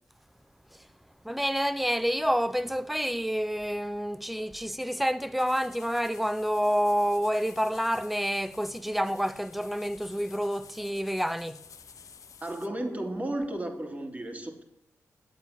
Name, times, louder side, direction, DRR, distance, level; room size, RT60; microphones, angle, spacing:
voice 1, 1.2-11.6, equal, ahead, 0.8 m, -28 dB
sound 1, 5.4-12.7, left 7 dB, 70° left, 0.7 m, -51 dB
voice 2, 12.4-14.6, right 1 dB, 25° right, 2.9 m, -33 dB
11.5 x 8.8 x 10.0 m
cardioid pair, 55°, 6 cm